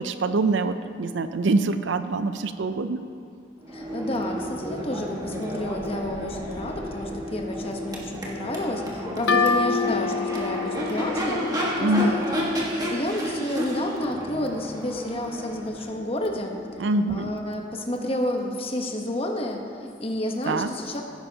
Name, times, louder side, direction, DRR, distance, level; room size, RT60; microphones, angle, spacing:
voice 1, 0.0-3.1 11.8-12.2 16.8-17.3 20.4-20.7, right 2 dB, 75° right, 10 dB, 0.5 m, -24 dB
Crowd / Race car auto racing / Accelerating revving vroom, 3.6-17.5, equal, 20° right, 1.5 m, -32 dB
voice 2, 3.7-12.3 12.6-21.0, left 1 dB, 30° left, 2 dB, 1.1 m, -30 dB
sound 1, 9.3-12.8, left 5 dB, 80° left, 0.6 m, -27 dB
16.0 x 9.8 x 2.9 m, 2.4 s
head